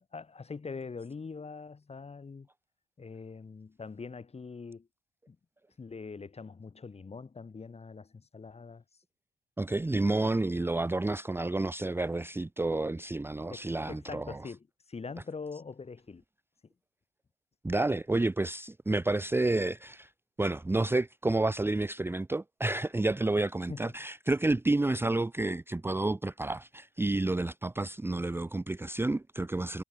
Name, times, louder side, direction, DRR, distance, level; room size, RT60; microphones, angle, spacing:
voice 1, 0.0-2.5 3.0-4.9 5.3-5.4 5.8-8.8 13.5-16.2 23.7-23.9, left 4 dB, 30° left, 3.9 m, -43 dB
voice 2, 9.6-14.4 17.6-20.1 20.4-29.8, right 2 dB, 10° right, 0.8 m, -30 dB
cardioid pair, 90°, 20 cm